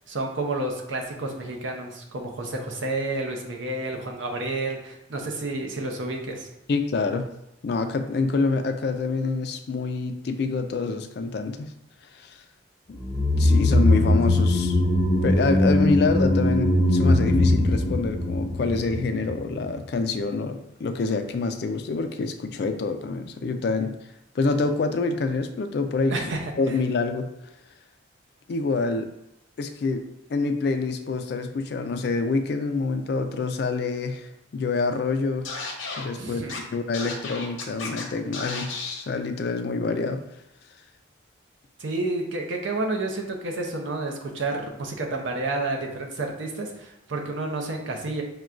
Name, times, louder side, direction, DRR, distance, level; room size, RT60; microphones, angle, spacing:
voice 1, 0.1-6.5 26.1-26.5 36.2-36.6 41.8-48.2, right 2 dB, 75° right, 2 dB, 0.7 m, -30 dB
voice 2, 6.7-7.3 7.6-11.7 12.2-12.4 12.9-13.0 13.4-14.8 15.2-23.9 24.4-26.1 26.6-27.3 28.5-29.1 29.6-30.0 30.3-35.5 36.0-36.4 36.7-38.7 39.1-40.2, left 3 dB, 55° left, 8 dB, 0.3 m, -26 dB
sound 1, 13.0-19.4 19.6-19.7, left 1 dB, 5° right, 0.8 m, -21 dB
Scratching (performance technique), 35.4-36.0 36.5-36.6 36.9-38.0 38.3-39.0, left 4 dB, 80° left, 0.7 m, -33 dB
5.9 x 2.2 x 2.5 m, 0.83 s
head